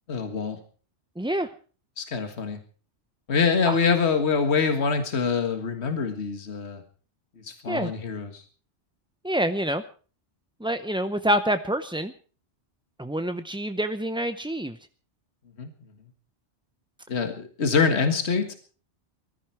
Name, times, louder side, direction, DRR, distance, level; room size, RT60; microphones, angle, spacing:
voice 1, 0.1-0.6 2.0-2.6 3.3-6.8 7.4-8.4 15.6-15.7 17.1-18.5, left 5 dB, 70° left, 7 dB, 1.9 m, -25 dB
voice 2, 1.2-1.5 3.6-3.8 7.7-7.9 9.2-9.8 10.6-12.1 13.0-14.8, right 1 dB, 5° right, 9 dB, 0.5 m, -26 dB
20.0 x 14.0 x 4.7 m, 0.40 s
omnidirectional pair, 1.2 m